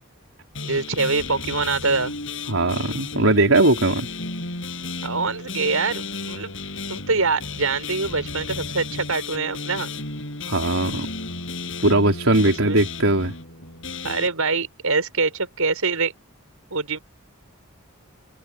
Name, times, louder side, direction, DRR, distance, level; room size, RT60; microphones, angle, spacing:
sound 1, 0.5-14.3, left 3 dB, 60° left, 7.2 m, -33 dB
voice 1, 0.6-2.1 5.0-6.5 6.9-9.9 12.6-12.8 14.0-16.1 16.7-17.0, right 4 dB, 90° right, 5.7 m, -24 dB
voice 2, 2.5-4.1 10.4-11.1 11.8-13.3, right 2 dB, 70° right, 4.4 m, -19 dB
open air
head